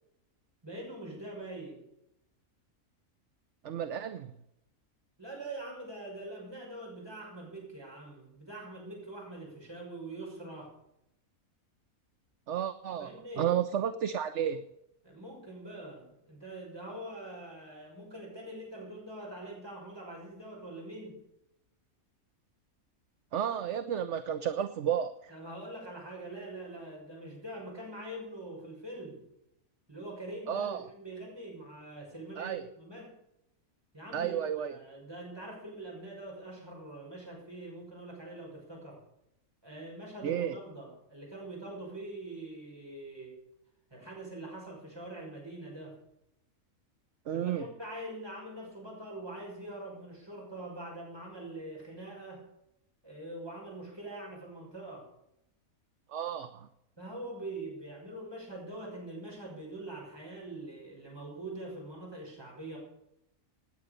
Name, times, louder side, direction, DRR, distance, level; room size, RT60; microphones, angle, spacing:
voice 1, 0.6-1.8 5.2-10.7 13.0-13.5 15.0-21.2 25.3-29.3 29.9-33.2 33.9-34.4 34.7-39.0 39.6-43.4 43.9-46.0 47.3-52.4 53.0-55.1 57.0-62.8, right 1 dB, 15° right, -2 dB, 6.1 m, -44 dB
voice 2, 3.6-4.3 12.5-13.1 13.4-14.6 23.3-25.3 30.5-30.8 32.4-32.6 34.1-34.7 40.2-40.6 47.3-47.7 56.1-56.7, right 9 dB, 60° right, 11 dB, 1.0 m, -32 dB
18.0 x 9.5 x 6.7 m, 0.83 s
omnidirectional pair, 1.5 m